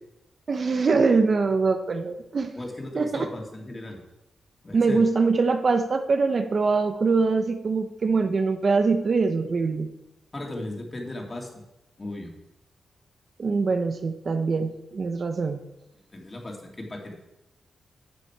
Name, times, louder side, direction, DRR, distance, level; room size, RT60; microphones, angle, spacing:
voice 1, 0.5-2.5 2.9-3.3 4.7-9.9 13.4-15.6, right 4 dB, 50° right, 7 dB, 1.0 m, -23 dB
voice 2, 2.5-4.0 4.6-5.0 10.3-11.6 12.0-12.3 15.4-15.5 16.1-16.6 16.9-17.2, left 1 dB, 30° left, 0 dB, 3.0 m, -36 dB
12.0 x 7.2 x 4.8 m, 0.89 s
cardioid pair, 80°, 0 cm